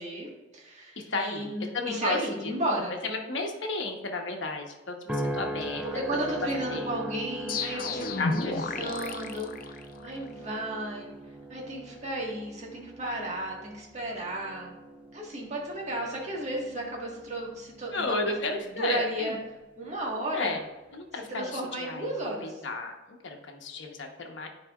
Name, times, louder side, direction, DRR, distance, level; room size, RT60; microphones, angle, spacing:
voice 1, 0.0-3.0 5.9-9.7 10.0-11.1 11.5-14.7 15.1-18.4 18.8-19.4 19.8-20.6 21.3-22.6, right 1 dB, 40° right, -2 dB, 1.6 m, -33 dB
voice 2, 1.0-2.5 3.0-5.8 6.1-6.2 6.7-6.9 8.2-8.9 17.9-19.4 20.3-20.6 20.9-24.5, left 3 dB, 70° left, 2 dB, 1.1 m, -33 dB
sound 1, 5.1-19.6 20.1-20.5, right 1 dB, 5° right, 0.4 m, -40 dB
sound 2, 7.5-10.3, left 3 dB, 50° left, 0.5 m, -32 dB
10.0 x 4.8 x 2.4 m, 1.1 s
head